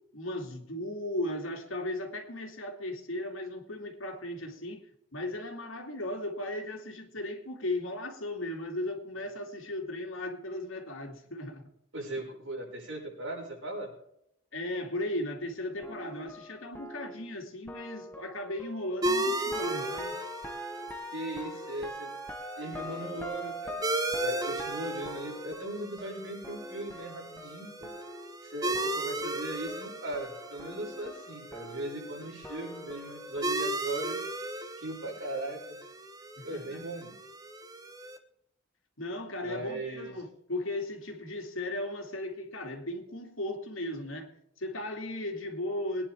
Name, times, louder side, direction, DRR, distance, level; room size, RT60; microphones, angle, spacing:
voice 1, 0.1-4.8 5.1-11.7 14.5-20.2 36.4-36.8 39.0-44.3 44.6-46.1, left 1 dB, 85° left, 2.5 m, -36 dB
voice 2, 11.9-13.9 21.1-22.1 22.6-27.9 28.4-34.2 34.8-35.9 36.4-37.1 39.4-40.1, right 1 dB, 70° right, 5.9 m, -38 dB
sound 1, 15.8-28.5 28.7-33.6, equal, 10° left, 1.0 m, -43 dB
sound 2, 19.0-38.2, right 1 dB, 20° right, 1.1 m, -36 dB
22.0 x 10.0 x 3.5 m
head